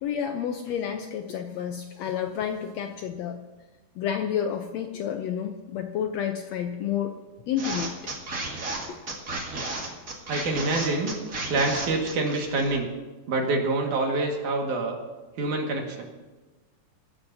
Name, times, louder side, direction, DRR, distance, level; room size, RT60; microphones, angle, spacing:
voice 1, 0.0-3.4 4.0-7.1 7.5-8.1 8.9-9.0, left 8 dB, 75° left, 5 dB, 1.6 m, -30 dB
sound 1, 7.6-12.8, right 2 dB, 30° right, 1.9 m, -33 dB
voice 2, 10.3-11.1 11.5-12.9 13.3-15.0 15.4-16.0, right 2 dB, 70° right, 1 dB, 3.2 m, -26 dB
24.5 x 14.0 x 2.7 m, 1.2 s
omnidirectional pair, 3.7 m